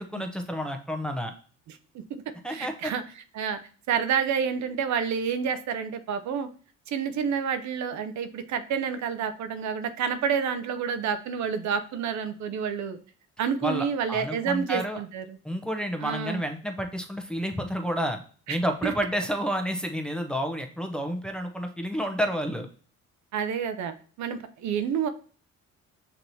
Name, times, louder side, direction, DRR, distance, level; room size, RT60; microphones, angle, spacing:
voice 1, 0.0-1.3 2.4-2.9 13.6-15.0 15.4-18.2 18.5-22.7, equal, 5° left, 3 dB, 0.6 m, -30 dB
voice 2, 2.5-3.0 3.3-3.6 3.9-6.5 6.9-13.0 13.4-15.2 16.0-16.4 18.5-18.6 18.8-18.9 23.3-25.1, right 7 dB, 65° right, 10 dB, 0.6 m, -29 dB
6.4 x 2.9 x 2.7 m, 0.42 s
cardioid pair, 90°, 30 cm